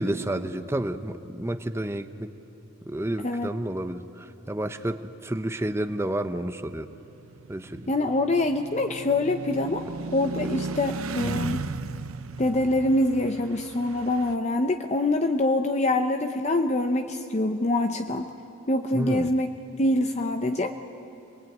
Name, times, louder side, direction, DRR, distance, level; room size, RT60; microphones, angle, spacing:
voice 1, 0.0-2.3 2.8-6.9 7.5-7.9 18.9-19.3, right 1 dB, 10° right, 9 dB, 0.6 m, -30 dB
sound 1, 6.9-14.3, right 3 dB, 75° right, 0.7 m, -36 dB
voice 2, 7.9-9.8 10.1-11.6 12.4-18.3 18.7-19.5 19.8-20.8, left 2 dB, 30° left, 6 dB, 0.7 m, -25 dB
24.5 x 20.5 x 9.2 m, 2.9 s
head